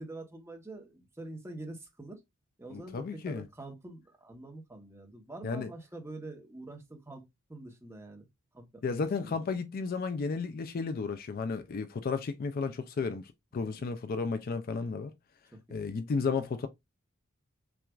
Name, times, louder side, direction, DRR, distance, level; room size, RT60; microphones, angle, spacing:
voice 1, 0.0-2.2 2.6-7.2 7.5-8.3 8.5-8.8 9.2-9.4 13.6-13.8 15.5-15.8, right 2 dB, 10° right, 1.0 m, -45 dB
voice 2, 2.7-3.4 5.4-5.7 8.8-15.1 15.7-16.7, left 4 dB, 45° left, 0.4 m, -33 dB
5.8 x 2.4 x 2.3 m
head